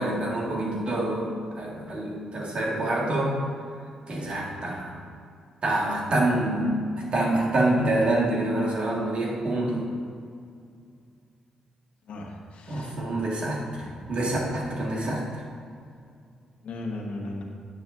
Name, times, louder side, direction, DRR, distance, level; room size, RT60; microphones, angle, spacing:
voice 1, 0.0-3.3 4.1-4.9 5.6-9.8 12.7-13.6 14.1-15.2, right 1 dB, 55° right, -3 dB, 1.9 m, -26 dB
voice 2, 12.1-12.9 13.8-14.2 16.6-17.4, left 2 dB, 70° left, 1 dB, 1.2 m, -37 dB
9.8 x 7.7 x 2.6 m, 2.3 s
supercardioid pair, 60°, 2 cm